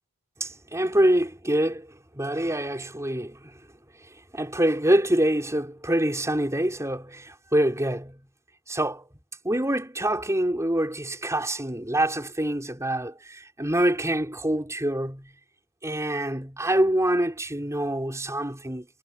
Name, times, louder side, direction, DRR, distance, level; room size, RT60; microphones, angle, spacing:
voice 1, 0.4-3.6 4.1-8.2 8.7-9.1 9.4-15.3 15.8-18.9, right 1 dB, 15° right, 5.5 m, -25 dB
head